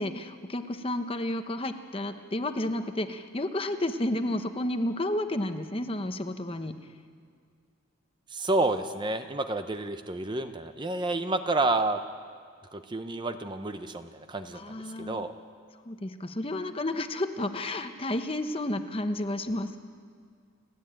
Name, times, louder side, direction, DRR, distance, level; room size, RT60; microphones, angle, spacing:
voice 1, 0.0-6.8 14.5-15.2 15.8-19.8, left 1 dB, 25° left, 8 dB, 0.9 m, -31 dB
voice 2, 8.3-12.0 12.7-15.3, right 2 dB, 20° right, 8 dB, 0.7 m, -30 dB
30.0 x 10.5 x 8.9 m, 2.2 s
head